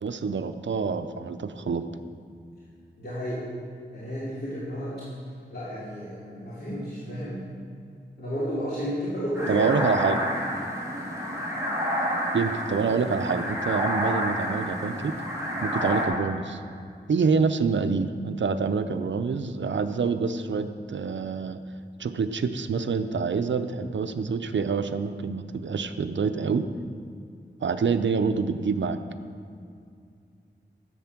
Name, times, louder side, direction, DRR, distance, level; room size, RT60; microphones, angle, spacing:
voice 1, 0.0-1.8 9.5-10.2 12.3-15.1 15.6-16.6 17.1-21.6 22.0-26.7 27.6-29.0, right 5 dB, 80° right, 9 dB, 0.6 m, -26 dB
voice 2, 2.9-3.4 3.9-4.9 5.5-7.4 8.2-9.7, equal, 55° left, -11 dB, 2.9 m, -32 dB
sound 1, 9.3-16.1, equal, 15° right, 2.7 m, -29 dB
11.0 x 7.8 x 5.9 m, 2.3 s
wide cardioid pair, 85°, 19 cm